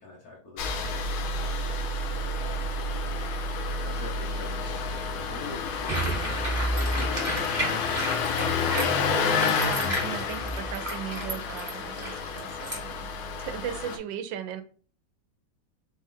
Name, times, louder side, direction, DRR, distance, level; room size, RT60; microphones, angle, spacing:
voice 1, 0.0-8.3, left 3 dB, 60° left, -4 dB, 1.5 m, -46 dB
Engine starting, 0.6-14.0, left 4 dB, 85° left, 1.4 m, -29 dB
sound 1, 5.9-12.8, right 1 dB, 15° right, 1.7 m, -33 dB
voice 2, 8.4-13.1 13.4-14.6, right 10 dB, 80° right, 9 dB, 1.2 m, -37 dB
4.0 x 3.1 x 3.7 m, 0.42 s
omnidirectional pair, 2.0 m